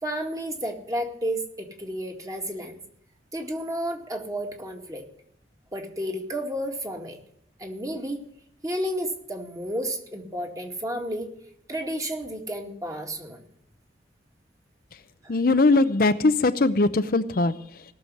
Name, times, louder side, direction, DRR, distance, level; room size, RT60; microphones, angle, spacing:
voice 1, 0.0-2.8 3.3-5.0 5.7-7.2 7.6-8.3 8.6-11.3 11.7-13.4 15.2-15.4, equal, 20° right, 3 dB, 2.1 m, -31 dB
voice 2, 15.3-17.8, left 3 dB, 50° left, 10 dB, 0.6 m, -21 dB
18.0 x 6.9 x 9.7 m, 0.72 s
head